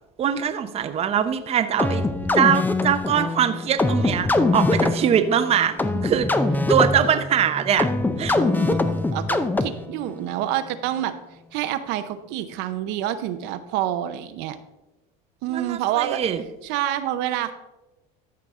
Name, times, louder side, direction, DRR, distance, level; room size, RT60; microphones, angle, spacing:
voice 1, 0.2-2.0 2.3-6.3 6.7-7.9 8.2-8.4 15.5-16.4, right 8 dB, 30° right, 9 dB, 0.6 m, -22 dB
sound 1, 1.8-10.0, left 2 dB, 10° left, 0.5 m, -23 dB
voice 2, 8.3-11.2 11.5-14.6 15.4-16.2 16.6-17.5, right 12 dB, 70° right, 10 dB, 0.7 m, -28 dB
14.0 x 5.8 x 3.6 m, 1.0 s
supercardioid pair, 120°, 19 cm